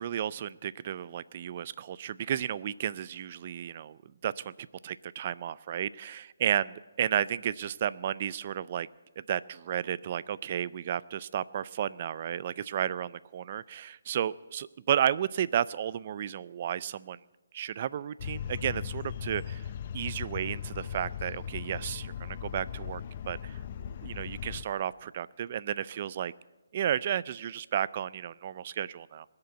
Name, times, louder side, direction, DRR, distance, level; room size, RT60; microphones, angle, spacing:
voice 1, 0.0-8.9 9.2-17.2 17.5-19.7 19.9-23.0 23.3-23.6 24.0-26.3 26.7-29.2, right 10 dB, 35° right, 19 dB, 0.4 m, -33 dB
sound 1, 18.2-24.6, left 9 dB, 35° left, 0.6 m, -38 dB
20.5 x 6.8 x 9.0 m, 1.1 s
hypercardioid pair, 160°, 0 cm